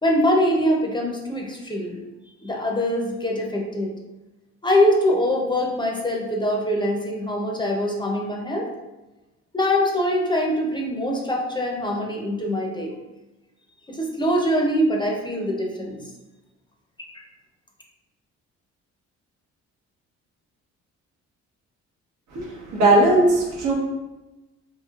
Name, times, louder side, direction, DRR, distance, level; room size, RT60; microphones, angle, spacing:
voice 1, 0.0-2.0 2.4-3.9 4.6-8.7 9.5-12.9 13.9-16.0 17.1-17.2, equal, 15° left, -1 dB, 0.5 m, -23 dB
voice 2, 22.3-23.7, right 2 dB, 85° right, -3 dB, 0.9 m, -18 dB
3.1 x 2.8 x 2.3 m, 1.1 s
cardioid pair, 90°, 30 cm